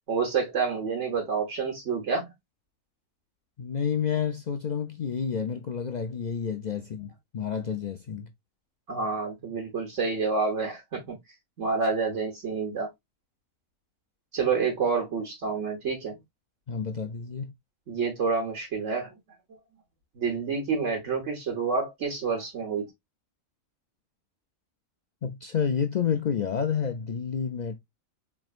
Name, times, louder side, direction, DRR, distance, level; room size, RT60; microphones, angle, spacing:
voice 1, 0.1-2.3 8.9-11.2 11.6-12.9 14.3-16.2 17.9-19.1 20.1-22.9, right 5 dB, 60° right, 1.5 m, -28 dB
voice 2, 3.6-8.3 16.7-17.5 25.2-27.8, left 7 dB, 70° left, 0.4 m, -29 dB
4.4 x 3.4 x 2.4 m
omnidirectional pair, 1.4 m